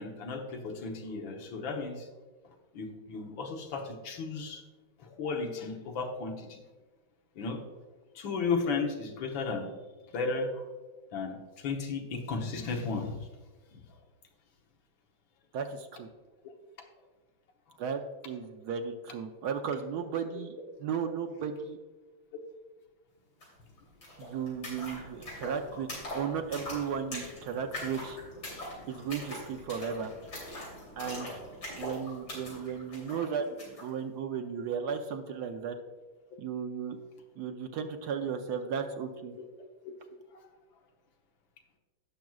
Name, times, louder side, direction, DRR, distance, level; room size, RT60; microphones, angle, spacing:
voice 1, 0.0-2.1 2.7-4.6 5.0-6.6 7.4-7.6 8.2-9.7 10.1-10.7 11.1-13.2 13.7-13.8 20.3-20.4, left 4 dB, 65° left, 2 dB, 1.8 m, -34 dB
voice 2, 15.5-16.1 17.8-18.0 18.2-20.5 20.8-21.8 24.2-28.2 28.8-30.1 31.0-31.3 31.8-35.7 36.4-37.0 37.4-39.3, right 7 dB, 70° right, 6 dB, 1.0 m, -35 dB
sound 1, 23.4-23.5 23.7-33.9, left 1 dB, 50° left, 3.7 m, -42 dB
16.5 x 6.0 x 2.4 m, 1.3 s
omnidirectional pair, 2.3 m